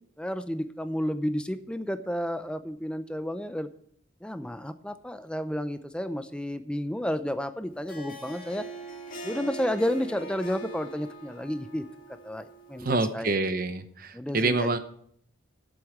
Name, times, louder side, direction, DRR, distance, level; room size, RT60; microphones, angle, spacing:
voice 1, 0.2-3.7 4.2-8.7 9.2-11.8 12.2-13.3 14.1-14.8, equal, 5° left, 10 dB, 0.6 m, -31 dB
Harp, 7.7-13.1, right 2 dB, 45° left, 1.9 m, -42 dB
voice 2, 12.8-14.8, right 3 dB, 45° right, 10 dB, 0.8 m, -27 dB
8.5 x 8.0 x 7.2 m, 0.66 s
head